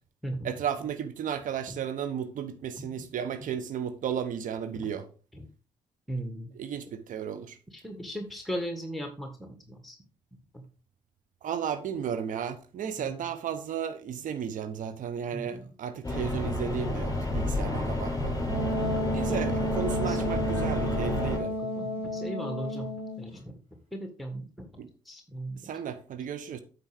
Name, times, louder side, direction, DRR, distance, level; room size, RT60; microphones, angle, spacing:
voice 1, 0.4-5.1 6.6-7.6 11.4-18.4 19.1-21.5 24.8-24.9 25.6-26.6, right 8 dB, 60° right, 1.0 m, -34 dB
voice 2, 2.8-3.1 3.4-3.5 4.7-4.9 5.3-5.5 6.1-6.5 7.7-10.0 10.5-10.6 13.0-13.1 15.3-15.7 19.3-19.5 19.9-20.3 21.6-25.6, right 1 dB, ahead, 1.7 m, -38 dB
sound 1, 16.0-21.4, left 1 dB, 20° left, 4.7 m, -30 dB
Wind instrument woodwind instrument, 18.5-23.3, equal, 35° right, 3.9 m, -32 dB
9.1 x 5.6 x 4.8 m
hypercardioid pair, 40°, 16 cm